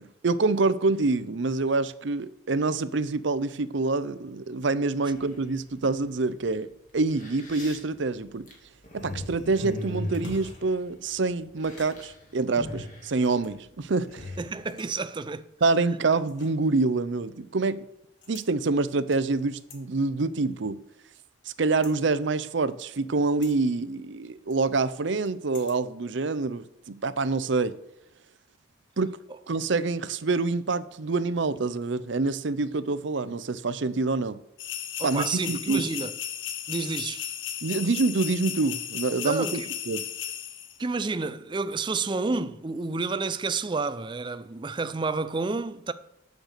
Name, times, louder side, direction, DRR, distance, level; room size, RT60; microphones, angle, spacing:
voice 1, 0.0-6.7 6.9-8.5 8.9-14.2 15.6-17.9 18.3-20.8 21.6-27.8 29.0-29.2 29.5-34.4 35.0-35.9 37.6-40.1, right 3 dB, 65° right, 0.6 m, -26 dB
sound 1, 5.1-5.8 6.5-6.6 7.0-11.2 11.5-12.1 12.4-14.5, equal, 40° left, 2.6 m, -38 dB
sound 2, 10.0-10.6 11.6-12.0 13.2-13.6 14.6-15.2 16.3-16.7 18.2-18.5 19.1-19.8 20.3-21.2 21.6-22.0 22.8-23.1 23.4-23.6 24.5-25.8 26.1-26.2, left 4 dB, 60° left, 1.8 m, -52 dB
voice 2, 14.4-15.4 35.0-36.1 36.7-37.3 39.2-39.7 40.8-45.9, right 3 dB, 25° right, 0.4 m, -30 dB
sound 3, 34.6-40.8, left 10 dB, 75° left, 0.9 m, -35 dB
9.0 x 6.7 x 6.6 m
head